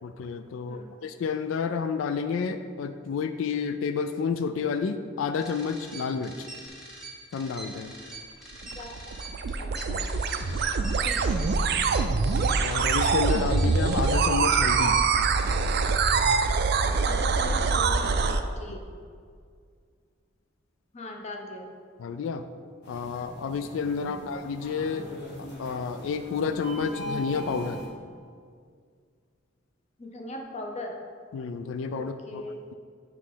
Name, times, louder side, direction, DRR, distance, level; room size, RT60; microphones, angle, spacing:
voice 1, 0.0-6.3 7.3-7.9 12.3-15.0 22.0-22.4 22.9-25.1 25.6-27.8 31.3-32.4, left 5 dB, 80° left, 9 dB, 0.3 m, -30 dB
voice 2, 0.7-1.0 8.7-8.9 9.5-10.1 11.0-11.4 17.0-18.9 20.9-21.7 24.0-24.3 30.0-31.0 31.9-32.6, left 1 dB, 35° left, 2 dB, 0.7 m, -40 dB
sound 1, 5.4-14.1, right 2 dB, ahead, 1.0 m, -44 dB
sound 2, 8.5-18.4, right 4 dB, 55° right, 0.4 m, -24 dB
sound 3, 22.8-27.9, right 1 dB, 60° left, 1.4 m, -40 dB
8.1 x 3.1 x 5.7 m, 2.1 s
head